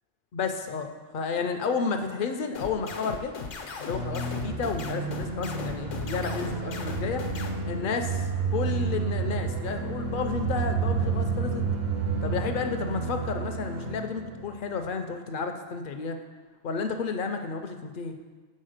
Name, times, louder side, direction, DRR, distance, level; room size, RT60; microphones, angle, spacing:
voice 1, 0.3-3.3 3.8-7.3 7.6-8.1 8.5-11.6 12.2-16.2 16.6-18.1, left 5 dB, 55° left, 6 dB, 0.6 m, -31 dB
sound 1, 2.5-7.5, left 5 dB, 80° left, 1.1 m, -37 dB
sound 2, 3.9-14.6, right 4 dB, 55° right, 1.0 m, -30 dB
6.4 x 4.1 x 6.4 m, 1.4 s
omnidirectional pair, 1.3 m